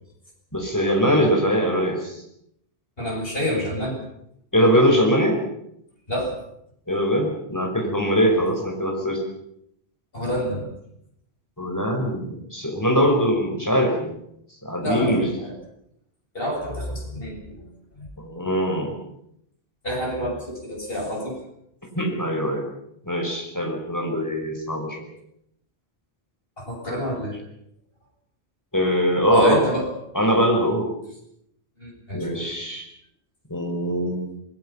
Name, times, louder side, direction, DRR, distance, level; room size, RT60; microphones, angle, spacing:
voice 1, 0.5-2.2 4.5-5.4 6.9-9.2 11.6-14.2 14.6-15.3 18.2-19.0 21.9-22.6 23.0-25.1 28.7-29.6 30.1-30.9 32.1-32.9 33.5-34.2, equal, 15° left, 1 dB, 5.3 m, -22 dB
voice 2, 3.0-4.0 6.1-6.3 10.1-10.7 14.8-15.5 16.3-17.4 18.0-18.1 19.8-21.3 26.6-27.4 29.3-29.9 31.8-32.5, equal, 65° left, -1 dB, 7.5 m, -28 dB
27.0 x 20.0 x 5.8 m, 0.76 s
omnidirectional pair, 1.1 m